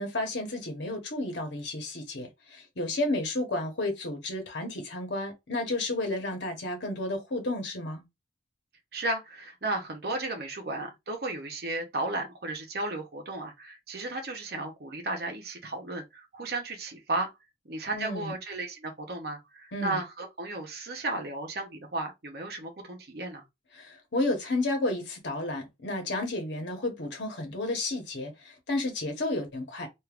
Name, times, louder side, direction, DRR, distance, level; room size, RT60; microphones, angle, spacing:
voice 1, 0.0-8.0 17.9-18.4 19.7-20.0 23.8-29.9, left 2 dB, 85° left, 1.1 m, -32 dB
voice 2, 8.9-17.3 17.6-23.4, right 2 dB, 60° right, 0.8 m, -34 dB
3.3 x 2.5 x 2.4 m
head